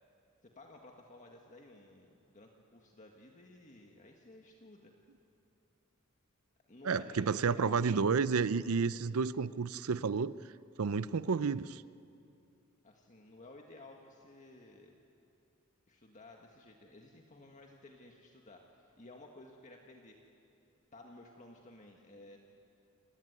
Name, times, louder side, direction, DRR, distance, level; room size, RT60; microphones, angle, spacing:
voice 1, 0.4-4.9 6.7-8.1 12.8-15.0 15.9-20.2 20.9-22.4, left 2 dB, 35° left, 1 dB, 1.7 m, -55 dB
voice 2, 6.8-10.4 10.8-11.8, right 5 dB, 70° right, 16 dB, 0.5 m, -31 dB
28.5 x 18.0 x 9.6 m, 2.6 s
head